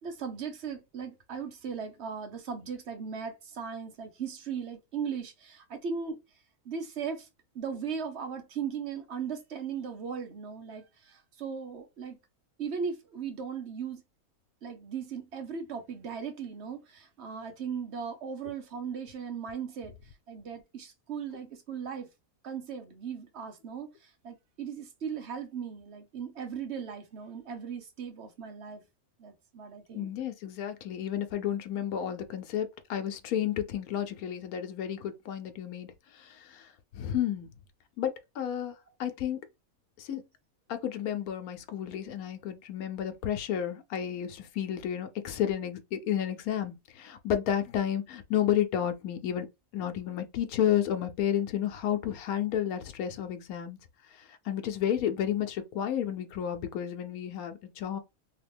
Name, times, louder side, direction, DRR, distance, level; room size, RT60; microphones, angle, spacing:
voice 1, 0.0-6.2 6.6-7.3 7.5-12.2 12.6-14.0 14.6-20.0 20.3-22.1 22.4-28.8 29.2-30.1, right 6 dB, 55° right, 0.9 m, -38 dB
voice 2, 29.9-36.7 36.9-37.5 38.0-38.7 39.0-39.4 40.0-40.2 40.7-49.5 49.7-53.8 54.1-58.0, left 10 dB, 80° left, 1.1 m, -31 dB
2.9 x 2.8 x 3.4 m
omnidirectional pair, 1.5 m